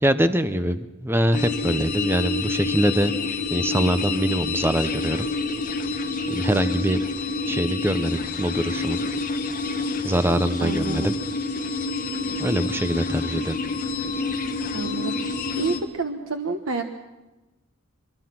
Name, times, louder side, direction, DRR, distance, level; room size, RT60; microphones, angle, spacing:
voice 1, 0.0-3.1 3.5-5.3 6.3-7.0 7.5-9.0 10.0-11.1 12.4-13.6, right 1 dB, 10° right, 11 dB, 0.7 m, -23 dB
sound 1, 1.3-15.8, left 3 dB, 40° left, 1.8 m, -28 dB
voice 2, 10.6-11.1 14.7-16.8, right 3 dB, 85° right, 5 dB, 1.2 m, -29 dB
24.5 x 23.0 x 6.0 m, 1.1 s
head